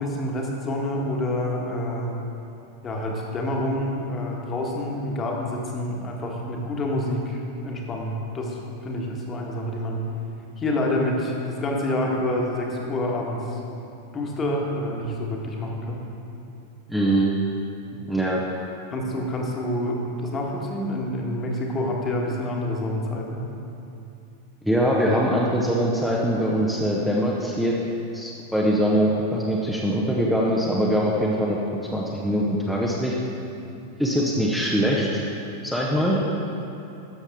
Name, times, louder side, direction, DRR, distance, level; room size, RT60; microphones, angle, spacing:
voice 1, 0.0-2.2 2.8-10.0 10.6-13.6 14.1-16.1 17.9-18.0 18.9-23.4, left 1 dB, 25° left, -1 dB, 1.5 m, -27 dB
voice 2, 16.9-17.3 18.1-18.4 24.6-27.7 28.1-31.6 31.9-33.1 34.0-35.2 35.6-36.2, equal, ahead, -5 dB, 0.9 m, -22 dB
12.5 x 7.0 x 3.6 m, 2.8 s
figure-of-eight pair, 90°, 0 cm